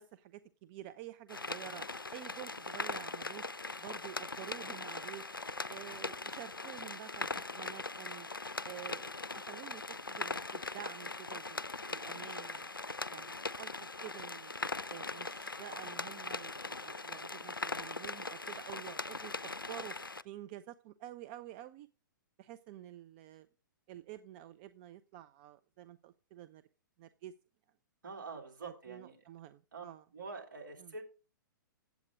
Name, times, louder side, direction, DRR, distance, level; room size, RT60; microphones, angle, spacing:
voice 1, 0.0-3.4 3.8-5.3 5.7-8.3 8.6-11.6 11.9-12.7 13.1-13.8 14.0-14.5 14.9-20.0 20.2-21.9 22.4-23.5 23.9-26.6 27.0-27.3 28.6-30.0 30.8-30.9, right 13 dB, 30° right, 11 dB, 0.4 m, -49 dB
sound 1, 1.3-20.2, left 3 dB, 85° left, 0.4 m, -41 dB
voice 2, 28.0-29.2 29.7-29.8 30.1-31.0, right 4 dB, 60° right, 1 dB, 2.5 m, -45 dB
8.2 x 8.0 x 4.9 m, 0.33 s
figure-of-eight pair, 115°, 11 cm